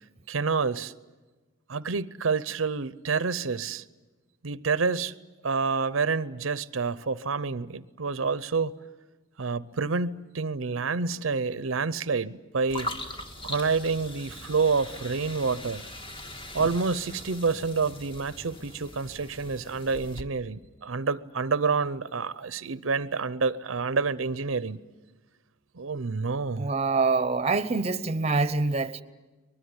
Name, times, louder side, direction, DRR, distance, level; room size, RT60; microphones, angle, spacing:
voice 1, 0.3-0.9 1.7-3.8 4.4-5.1 5.4-8.7 9.4-12.9 13.4-15.9 16.5-24.8 25.8-26.7, right 4 dB, 90° right, 0.7 m, -28 dB
sound 1, 12.7-20.2, left 1 dB, 25° left, 1.7 m, -40 dB
voice 2, 26.6-29.0, right 3 dB, 30° right, 0.8 m, -25 dB
23.5 x 20.5 x 9.7 m
head